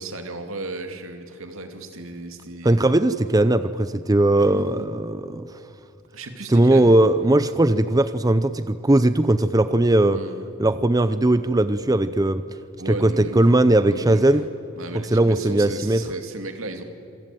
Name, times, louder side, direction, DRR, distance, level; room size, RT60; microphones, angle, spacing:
voice 1, 0.0-2.9 4.4-4.8 6.1-7.0 10.1-10.5 12.8-13.4 13.9-14.4 14.8-16.8, right 2 dB, 75° right, 6 dB, 2.6 m, -35 dB
voice 2, 2.6-5.5 6.5-10.2 10.6-12.4 12.9-14.4 15.1-16.0, right 1 dB, 15° right, 12 dB, 0.6 m, -19 dB
27.5 x 23.0 x 9.1 m, 2.9 s
head